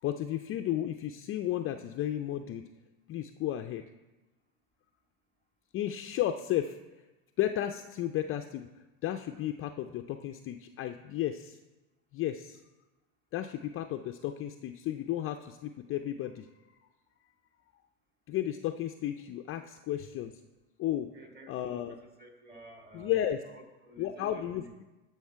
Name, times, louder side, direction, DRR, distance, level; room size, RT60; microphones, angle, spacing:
voice 1, 0.0-2.7 3.1-3.8 5.7-7.0 7.4-8.7 9.0-11.6 12.1-12.6 13.3-16.5 18.3-20.3 20.8-21.1 21.5-22.0 22.9-23.4 24.0-24.6, left 12 dB, 35° left, 6 dB, 0.4 m, -33 dB
voice 2, 21.1-24.9, right 1 dB, 25° right, 3 dB, 1.9 m, -52 dB
13.0 x 5.8 x 4.5 m, 1.1 s
hypercardioid pair, 100°, 42 cm